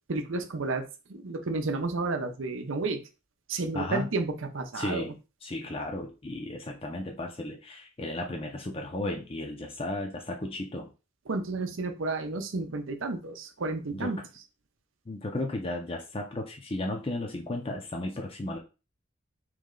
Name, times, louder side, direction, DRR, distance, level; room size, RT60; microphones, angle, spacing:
voice 1, 0.1-3.0 3.5-5.1 11.3-14.2, right 3 dB, 75° right, 6 dB, 0.6 m, -31 dB
voice 2, 3.7-4.1 4.7-5.1 5.4-10.9 13.9-14.1 15.1-18.6, left 2 dB, 30° left, 2 dB, 0.6 m, -34 dB
3.2 x 3.1 x 3.7 m, 0.31 s
head